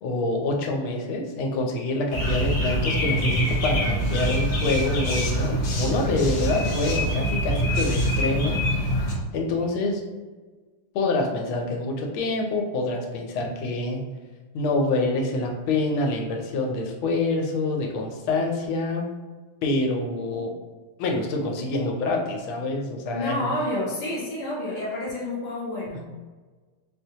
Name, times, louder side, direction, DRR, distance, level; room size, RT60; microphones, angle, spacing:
voice 1, 0.0-8.6 9.3-10.0 10.9-14.0 14.5-19.0 19.6-20.5 21.0-23.5 25.9-26.0, left 2 dB, 85° left, 2 dB, 1.4 m, -26 dB
sound 1, 2.1-9.1, equal, 65° left, 0.9 m, -24 dB
voice 2, 23.1-26.1, left 1 dB, 35° left, -7 dB, 0.7 m, -29 dB
4.4 x 2.1 x 2.7 m, 1.4 s
omnidirectional pair, 2.2 m